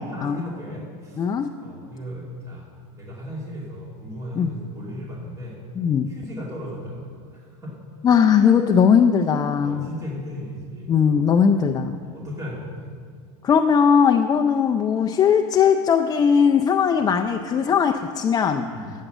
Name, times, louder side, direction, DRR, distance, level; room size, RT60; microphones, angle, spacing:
voice 1, 0.1-1.3 1.6-5.6 6.1-7.8 9.6-10.9 11.5-11.7 12.0-13.0 18.7-18.9, equal, 20° right, -4 dB, 2.5 m, -36 dB
voice 2, 1.2-1.5 4.4-4.5 5.8-6.1 8.0-9.9 10.9-12.0 13.4-18.7, left 7 dB, 25° left, 4 dB, 0.4 m, -19 dB
10.0 x 7.3 x 7.9 m, 2.1 s
supercardioid pair, 130°, 16 cm